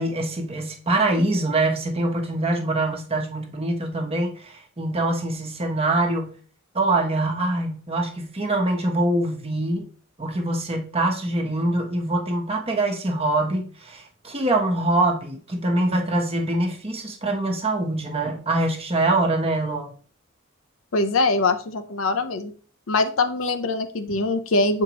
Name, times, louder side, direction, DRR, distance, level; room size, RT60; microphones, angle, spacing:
voice 1, 0.0-6.3 6.7-9.9 10.2-19.9, right 2 dB, 30° right, 1.1 m, -24 dB
voice 2, 20.9-22.5 22.9-24.8, left 3 dB, 75° left, 0.7 m, -23 dB
7.2 x 4.5 x 3.0 m
head